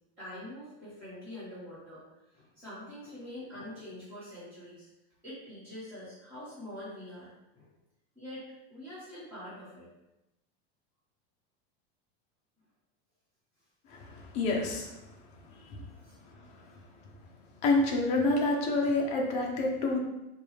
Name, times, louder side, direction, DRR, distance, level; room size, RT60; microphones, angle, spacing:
voice 1, 0.2-2.0 2.3-4.9 5.2-7.3 7.5-7.7 8.1-9.9 15.8-16.1, left 1 dB, 5° right, -16 dB, 1.2 m, -45 dB
voice 2, 13.9-14.9 15.7-15.8 16.5-16.7 17.6-20.0, left 2 dB, 20° left, -1 dB, 0.5 m, -28 dB
5.1 x 2.3 x 3.1 m, 0.94 s
supercardioid pair, 175°, 31 cm